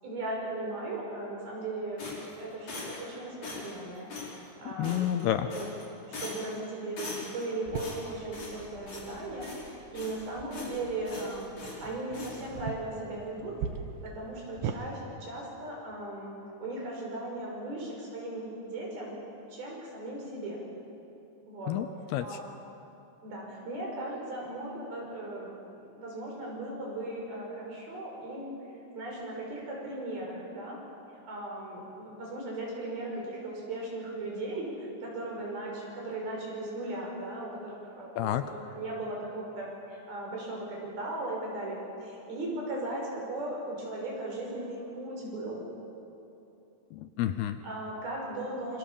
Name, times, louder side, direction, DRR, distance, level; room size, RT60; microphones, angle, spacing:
voice 1, 0.0-2.1 2.4-4.1 4.6-5.1 5.5-5.7 6.1-13.6 14.0-16.3 16.6-19.1 19.5-20.6 21.5-21.8 22.2-22.5 23.2-28.6 28.9-30.8 31.2-45.7 47.6-48.8, right 2 dB, 60° right, -2 dB, 7.6 m, -37 dB
sound 1, 2.0-3.1 3.4-3.8 4.1-4.3 4.8-5.2 5.5-5.8 6.1-6.5 7.0-7.4 7.7-8.6 8.9-9.1 9.4-10.2 10.5-10.8 11.0-11.8 12.1-12.4, left 3 dB, 40° left, 6.3 m, -41 dB
voice 2, 4.7-5.5 21.7-21.9 22.1-22.4 38.2-38.4 46.9-47.6, left 12 dB, 75° left, 10 dB, 2.5 m, -29 dB
sound 2, 7.7-14.8, right 7 dB, 80° right, 3.5 m, -42 dB
27.0 x 26.0 x 7.1 m, 2.9 s
omnidirectional pair, 5.0 m